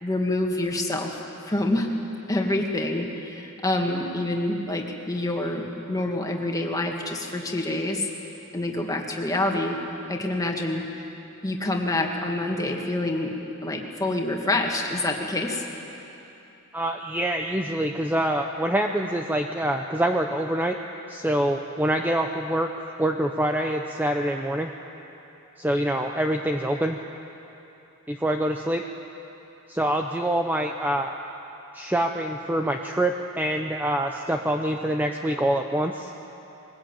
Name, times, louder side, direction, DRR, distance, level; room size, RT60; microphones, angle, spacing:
voice 1, 0.0-1.1 1.4-1.9 2.3-8.1 8.5-9.8 10.1-10.8 11.4-13.3 13.6-15.7, left 1 dB, 15° left, 1 dB, 2.1 m, -27 dB
voice 2, 16.7-20.8 21.1-22.7 23.0-24.7 25.6-27.0 28.1-28.8 29.7-31.1 31.7-36.1, right 1 dB, 10° right, 3 dB, 0.7 m, -25 dB
22.5 x 20.0 x 9.0 m, 2.9 s
head